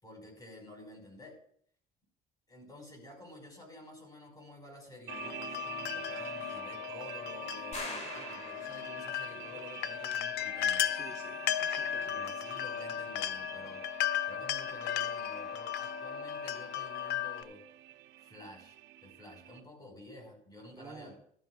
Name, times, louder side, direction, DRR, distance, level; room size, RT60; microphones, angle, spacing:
voice 1, 0.0-1.4 2.5-10.9 12.1-13.9 14.3-17.6 18.2-18.8 19.0-21.1, left 1 dB, 25° left, 2 dB, 5.2 m, -51 dB
sound 1, 5.1-17.4, left 10 dB, 80° left, 0.7 m, -36 dB
sound 2, 5.1-19.6, right 13 dB, 90° right, 0.7 m, -48 dB
sound 3, 7.7-9.2, left 3 dB, 40° left, 2.1 m, -43 dB
voice 2, 10.9-12.2 20.7-21.1, right 4 dB, 20° right, -1 dB, 1.5 m, -51 dB
15.0 x 13.0 x 2.5 m, 0.63 s
cardioid pair, 110°, 17 cm